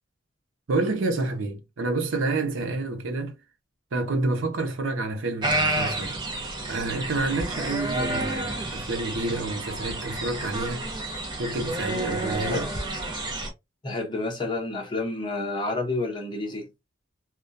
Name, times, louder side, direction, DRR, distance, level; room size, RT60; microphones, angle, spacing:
voice 1, 0.7-3.4 3.9-6.2 6.7-10.9 11.4-12.7, right 2 dB, 80° right, 0.6 m, -28 dB
sound 1, 5.4-13.5, right 2 dB, 25° right, 0.6 m, -30 dB
voice 2, 13.8-16.7, left 2 dB, 25° left, 0.8 m, -29 dB
2.2 x 2.2 x 2.6 m
head